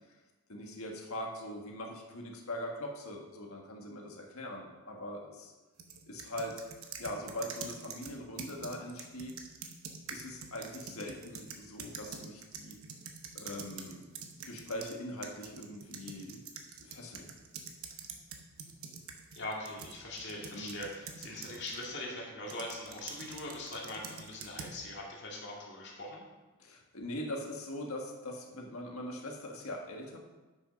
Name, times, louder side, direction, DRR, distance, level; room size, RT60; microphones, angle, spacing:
voice 1, 0.5-5.5 6.1-6.6 7.0-9.3 10.1-12.7 13.3-14.0 14.4-16.4 16.8-17.3 20.5-20.8 26.6-30.2, left 1 dB, 80° left, 1 dB, 1.5 m, -41 dB
sound 1, 5.8-15.0 15.2-21.9 22.5-24.8, right 5 dB, 75° right, 1.0 m, -46 dB
voice 2, 19.3-26.2, left 1 dB, 50° left, -3 dB, 2.2 m, -41 dB
8.2 x 6.3 x 5.3 m, 1.2 s
head